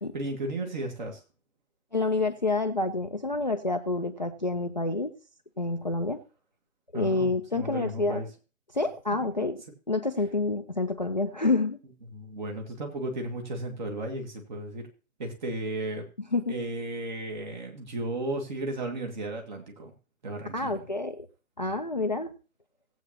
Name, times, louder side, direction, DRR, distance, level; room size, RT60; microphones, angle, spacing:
voice 1, 0.1-1.2 6.9-8.3 12.1-14.9 15.2-16.1 16.5-19.9 20.2-20.9, right 2 dB, 30° right, 3 dB, 2.1 m, -34 dB
voice 2, 1.9-5.1 5.6-6.2 6.9-8.2 8.7-9.6 9.9-11.8 16.3-16.5 20.5-21.3 21.6-22.3, left 3 dB, 35° left, 8 dB, 0.5 m, -28 dB
17.5 x 8.0 x 2.9 m, 0.34 s
figure-of-eight pair, 150°, 42 cm